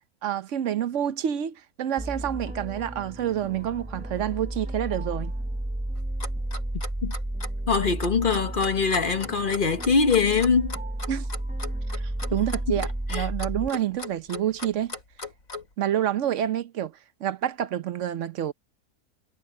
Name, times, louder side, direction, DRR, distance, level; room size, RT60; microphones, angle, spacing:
voice 1, 0.2-5.3 11.1-11.3 11.9-14.9 15.8-18.5, right 10 dB, 60° right, 1.0 m, -28 dB
sound 1, 2.0-13.7, right 1 dB, 10° right, 0.5 m, -33 dB
Clock, 6.0-15.7, left 1 dB, 70° left, 5.2 m, -37 dB
voice 2, 7.7-10.8 13.1-13.3, left 5 dB, 40° left, 1.1 m, -23 dB
omnidirectional pair, 1.5 m